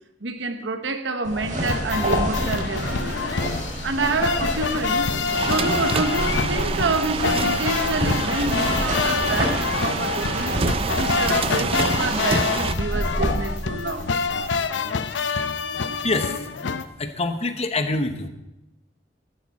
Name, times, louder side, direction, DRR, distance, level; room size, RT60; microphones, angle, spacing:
voice 1, 0.2-3.3 3.8-5.1 5.4-10.6 11.0-14.0, right 3 dB, 80° right, 1.1 m, -27 dB
sound 1, 1.2-14.6, equal, 50° right, 5.2 m, -29 dB
sound 2, 1.7-16.9, left 5 dB, 85° left, 0.7 m, -26 dB
sound 3, 4.5-12.7, right 4 dB, 30° right, 0.4 m, -28 dB
voice 2, 16.0-16.5 17.0-18.3, left 2 dB, 35° left, 1.1 m, -25 dB
14.0 x 12.0 x 4.2 m
head